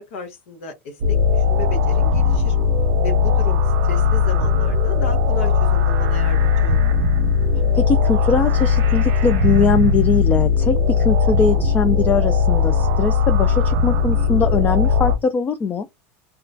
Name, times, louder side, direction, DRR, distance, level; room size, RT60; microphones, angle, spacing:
voice 1, 0.0-2.6 3.0-6.8, left 2 dB, 80° left, 0.7 m, -34 dB
sound 1, 1.0-15.2, left 5 dB, 65° right, 0.8 m, -18 dB
voice 2, 7.7-15.9, left 4 dB, 25° left, 0.3 m, -21 dB
2.3 x 2.1 x 2.5 m
supercardioid pair, 120°, 7 cm